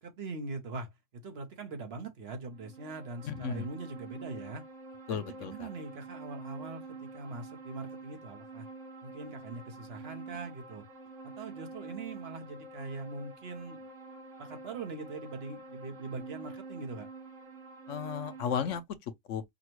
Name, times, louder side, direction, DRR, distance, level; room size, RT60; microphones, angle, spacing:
voice 1, 0.0-4.6 5.1-8.7 9.0-10.9 11.2-13.9 14.4-17.1, right 3 dB, 55° right, 1.1 m, -42 dB
sound 1, 2.5-18.8, right 3 dB, 85° right, 1.8 m, -47 dB
voice 2, 3.2-3.7 5.1-5.7 17.9-19.4, left 7 dB, 80° left, 1.0 m, -35 dB
5.1 x 2.2 x 3.0 m
omnidirectional pair, 1.3 m